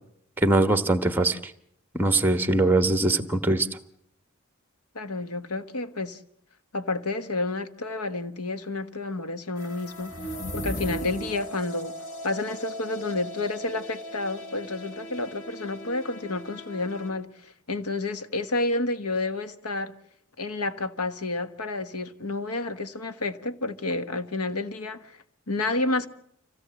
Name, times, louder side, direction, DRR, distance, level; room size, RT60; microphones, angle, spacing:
voice 1, 0.4-1.5 1.9-3.7, right 2 dB, 10° right, 1.1 m, -22 dB
voice 2, 4.9-6.2 6.7-10.1 10.5-11.9 12.2-19.9 20.4-25.2 25.5-26.1, left 2 dB, 85° left, 1.3 m, -30 dB
sound 1, 9.6-17.1, left 1 dB, 60° left, 3.9 m, -41 dB
sound 2, 10.0-11.6, equal, 30° left, 1.1 m, -34 dB
26.0 x 17.0 x 7.8 m
head